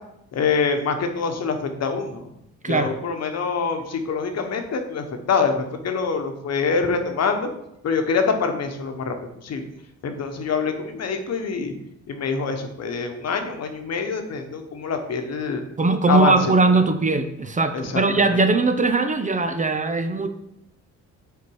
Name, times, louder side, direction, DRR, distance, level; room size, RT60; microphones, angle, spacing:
voice 1, 0.3-2.3 2.6-7.5 7.8-9.6 10.0-11.7 12.1-15.6 16.1-16.3 17.7-18.0 18.3-18.4, left 5 dB, 60° left, 6 dB, 1.1 m, -25 dB
voice 2, 15.8-20.3, right 3 dB, 25° right, 8 dB, 0.7 m, -20 dB
6.8 x 4.5 x 4.7 m, 0.81 s
cardioid pair, 90°, 30 cm